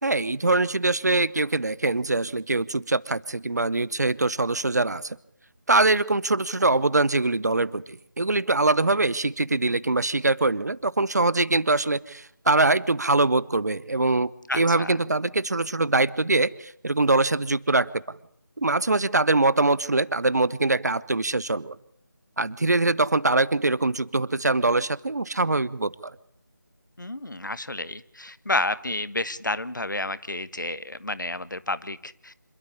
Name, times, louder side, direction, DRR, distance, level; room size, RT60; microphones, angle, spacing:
voice 1, 0.0-5.2 5.7-17.9 18.6-21.8 22.4-26.1, right 2 dB, 55° right, 20 dB, 0.9 m, -23 dB
voice 2, 14.5-14.9 27.0-32.4, left 2 dB, 70° left, 15 dB, 1.3 m, -30 dB
26.5 x 12.5 x 10.0 m, 0.70 s
figure-of-eight pair, 165°, 11 cm